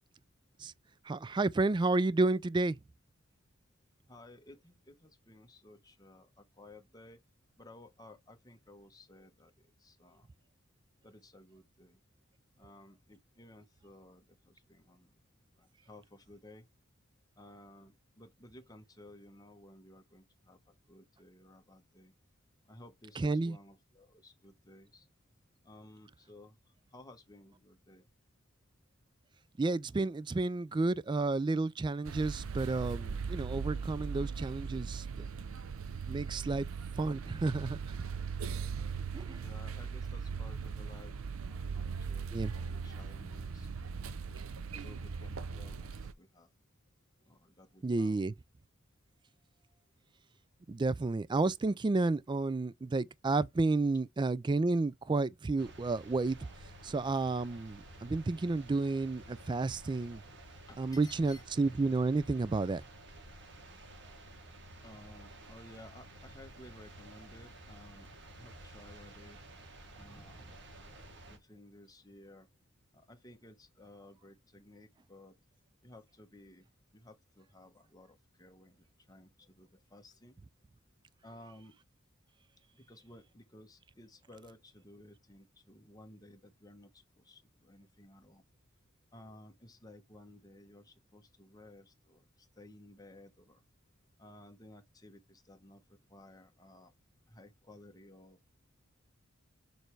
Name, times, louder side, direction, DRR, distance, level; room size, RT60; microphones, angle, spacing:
voice 1, 1.1-2.8 23.2-23.6 29.6-35.6 36.1-36.7 37.0-38.0 39.1-39.4 42.3-42.5 47.8-48.3 50.7-56.4 56.8-60.2 60.8-62.8, right 3 dB, 20° right, 0.3 m, -31 dB
voice 2, 4.1-7.2 7.6-9.5 9.8-10.3 11.0-12.0 12.6-15.1 15.6-16.7 17.4-22.1 22.7-25.1 25.6-26.6 26.9-28.1 39.4-41.1 41.4-43.7 44.6-46.5 47.3-48.3 60.7-61.4 64.8-68.1 68.4-69.4 69.9-70.4 71.3-72.5 72.9-75.3 75.8-76.6 76.9-80.4 81.2-81.7 82.7-88.4 89.1-93.6 94.2-96.9 97.3-98.4, left 1 dB, 20° left, 1.2 m, -56 dB
sound 1, 32.0-46.1, right 5 dB, 80° right, 0.6 m, -39 dB
sound 2, 55.6-71.4, right 1 dB, 60° right, 1.6 m, -52 dB
6.7 x 3.3 x 4.7 m
head